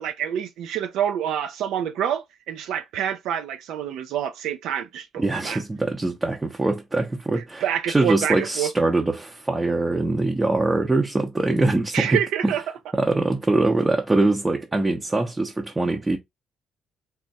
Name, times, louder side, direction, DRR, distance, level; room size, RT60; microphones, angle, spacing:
voice 1, 0.0-5.6 7.4-8.7 11.9-12.6, right 9 dB, 85° right, 0.4 m, -27 dB
voice 2, 5.2-12.5 12.9-16.2, right 2 dB, 15° right, 0.6 m, -23 dB
3.5 x 2.1 x 4.0 m
cardioid pair, 90°, 0 cm